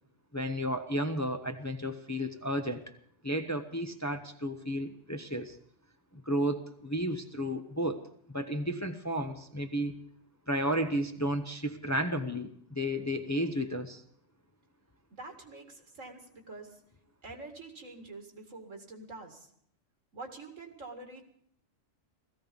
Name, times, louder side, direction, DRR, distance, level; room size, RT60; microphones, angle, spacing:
voice 1, 0.3-2.8 3.2-5.6 6.1-8.0 8.3-10.0 10.5-14.0, equal, 15° left, 6 dB, 0.8 m, -32 dB
voice 2, 15.1-16.8 17.2-19.5 20.1-21.2, right 3 dB, 80° right, 4 dB, 2.6 m, -46 dB
17.5 x 15.5 x 5.3 m, 0.68 s
omnidirectional pair, 1.3 m